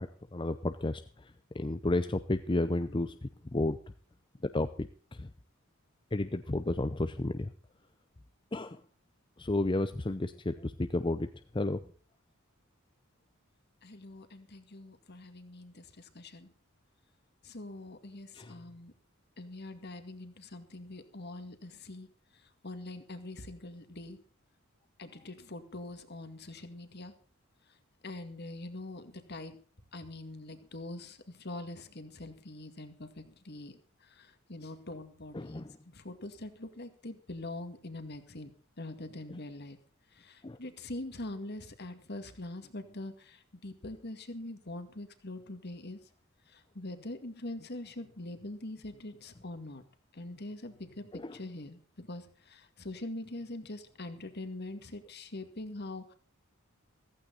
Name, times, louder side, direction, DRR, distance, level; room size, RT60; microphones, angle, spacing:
voice 1, 0.0-3.8 4.4-5.3 6.1-7.5 8.5-8.8 9.4-11.8 18.3-18.6 35.3-35.8 39.3-39.4 40.4-40.6 51.1-51.4, left 2 dB, 25° left, 9 dB, 0.6 m, -32 dB
voice 2, 13.8-16.5 17.4-18.9 19.4-22.1 22.6-24.2 25.0-27.1 28.0-29.6 29.9-33.7 34.0-35.6 35.9-39.8 40.1-46.0 46.5-49.8 50.1-56.1, left 2 dB, 50° left, 8 dB, 2.1 m, -43 dB
15.0 x 15.0 x 4.0 m, 0.41 s
head